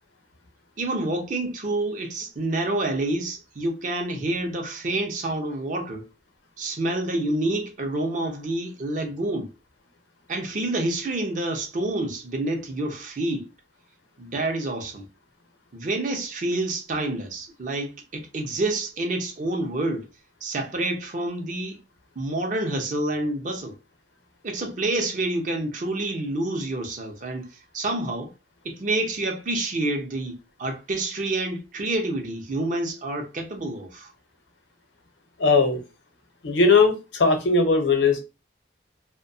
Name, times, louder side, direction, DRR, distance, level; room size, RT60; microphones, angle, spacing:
voice 1, 0.8-6.1 6.6-9.5 10.3-13.5 14.2-15.1 15.7-20.1 20.4-21.8 22.2-23.8 24.4-27.5 27.7-28.3 28.6-34.1, right 2 dB, 45° right, 0.5 m, -28 dB
voice 2, 35.4-35.8 36.4-38.2, left 4 dB, 85° left, 0.8 m, -19 dB
2.5 x 2.2 x 2.6 m
head